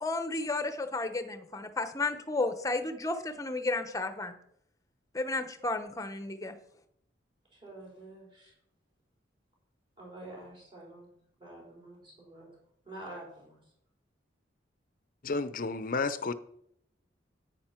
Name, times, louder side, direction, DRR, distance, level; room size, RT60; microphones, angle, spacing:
voice 1, 0.0-4.3 5.1-6.5, left 2 dB, 15° left, 0.8 m, -33 dB
voice 2, 7.5-8.5 10.0-12.5 12.8-13.7, right 1 dB, 25° right, 4.3 m, -48 dB
voice 3, 15.2-16.3, left 3 dB, 45° left, 0.6 m, -31 dB
10.5 x 9.1 x 4.4 m
head